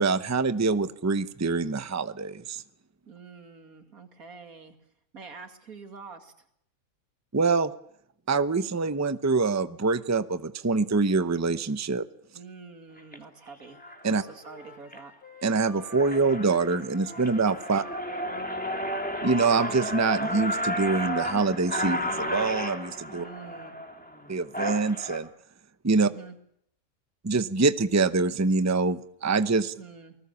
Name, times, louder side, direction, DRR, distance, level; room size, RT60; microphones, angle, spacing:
voice 1, 0.0-2.6 7.3-7.7 8.3-12.1 14.0-14.2 15.4-17.8 19.2-23.2 24.3-25.3 25.8-26.1 27.2-29.7, right 4 dB, 15° right, 12 dB, 0.7 m, -25 dB
voice 2, 3.1-4.8 5.1-6.3 12.3-13.8 14.1-15.1 17.7-17.8 23.1-23.7 25.9-26.4 29.8-30.2, right 4 dB, 90° right, 6 dB, 2.9 m, -46 dB
sound 1, 13.0-13.2 13.8-14.1 14.5-15.0 15.4-15.5 15.8-25.2, equal, 5° left, 2.7 m, -33 dB
Wind instrument woodwind instrument, 13.6-20.2, left 2 dB, 80° left, 3.1 m, -51 dB
28.5 x 20.0 x 7.1 m, 0.71 s
omnidirectional pair, 1.5 m